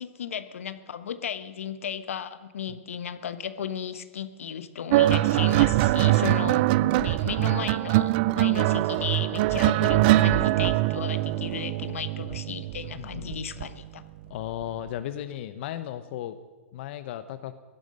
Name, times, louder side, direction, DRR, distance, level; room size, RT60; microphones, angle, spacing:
voice 1, 0.0-6.7 7.0-14.0, left 8 dB, 80° left, 12 dB, 1.1 m, -35 dB
sound 1, 4.9-13.6 14.6-14.9, right 16 dB, 45° right, 0.4 m, -23 dB
voice 2, 6.8-7.2 13.0-13.3 14.3-16.4 16.7-17.5, left 12 dB, 55° left, 11 dB, 0.9 m, -36 dB
16.0 x 12.0 x 6.4 m, 1.3 s
hypercardioid pair, 130°, 7 cm